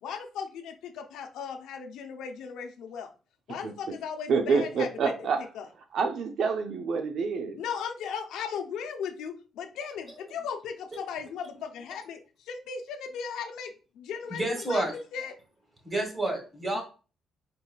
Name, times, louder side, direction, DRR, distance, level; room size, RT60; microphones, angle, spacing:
voice 1, 0.0-3.1 3.5-4.9 5.4-5.6 7.6-14.4 14.7-14.8 15.1-15.3 16.7-16.8, left 7 dB, 85° left, 0.7 m, -37 dB
voice 2, 4.3-5.4 5.9-7.6, right 5 dB, 70° right, 0.6 m, -27 dB
voice 3, 14.3-15.0 15.8-16.8, right 1 dB, 25° right, 1.9 m, -29 dB
4.7 x 4.0 x 2.3 m
cardioid pair, 90°, 0 cm